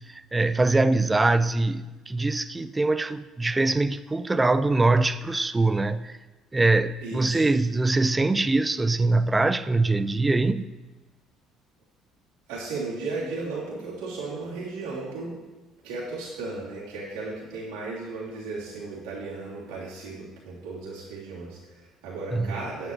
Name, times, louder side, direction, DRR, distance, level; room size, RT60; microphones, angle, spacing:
voice 1, 0.0-6.2 6.5-10.7 22.3-22.5, right 2 dB, 15° right, 0.5 m, -23 dB
voice 2, 7.0-7.5 12.5-15.4 15.8-22.9, right 3 dB, 65° right, 3.3 m, -35 dB
10.5 x 7.6 x 4.6 m
figure-of-eight pair, 55°, 0 cm